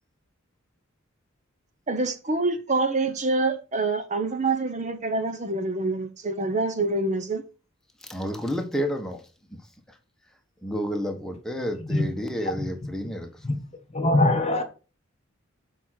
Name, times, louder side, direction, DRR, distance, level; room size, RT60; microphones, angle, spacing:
voice 1, 1.9-7.4, right 3 dB, 35° right, 1.1 m, -26 dB
voice 2, 8.0-9.2 10.6-13.3, equal, 5° left, 1.4 m, -30 dB
voice 3, 12.5-13.1 13.4-14.6, left 1 dB, 30° left, 1.4 m, -25 dB
7.5 x 4.9 x 5.9 m
head